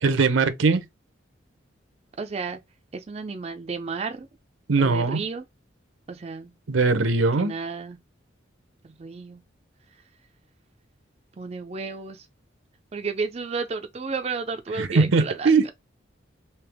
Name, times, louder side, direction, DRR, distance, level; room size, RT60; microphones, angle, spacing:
voice 1, 0.0-0.8 4.7-5.2 6.7-7.5 14.8-15.6, right 4 dB, 80° right, 0.7 m, -20 dB
voice 2, 2.2-2.6 2.9-4.3 4.8-5.4 6.1-6.5 7.4-8.0 8.8-9.4 11.4-12.3 12.9-15.5, right 4 dB, 30° right, 0.4 m, -32 dB
3.4 x 2.8 x 3.4 m
head